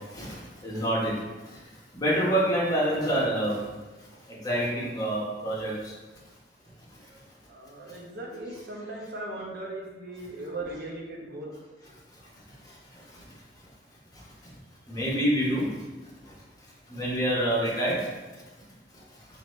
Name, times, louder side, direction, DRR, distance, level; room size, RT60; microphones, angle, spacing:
voice 1, 0.6-1.1 1.9-3.6 4.4-5.7 14.9-15.6 16.9-18.0, right 1 dB, 20° left, -6 dB, 1.2 m, -26 dB
voice 2, 7.5-11.5, right 2 dB, 60° right, -2 dB, 1.0 m, -38 dB
4.9 x 2.8 x 3.2 m, 1.2 s
head